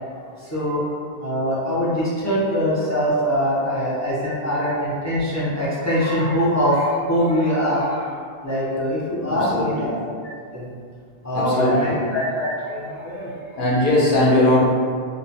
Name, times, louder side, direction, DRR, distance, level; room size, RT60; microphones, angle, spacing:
voice 1, 0.4-0.8 1.2-8.2 8.4-9.9 10.2-10.7 11.2-13.6, equal, 25° left, -10 dB, 0.4 m, -23 dB
voice 2, 9.3-10.0 11.3-12.1 13.2-14.6, left 1 dB, 60° left, -5 dB, 0.7 m, -20 dB
2.5 x 2.1 x 2.6 m, 2.1 s
omnidirectional pair, 1.0 m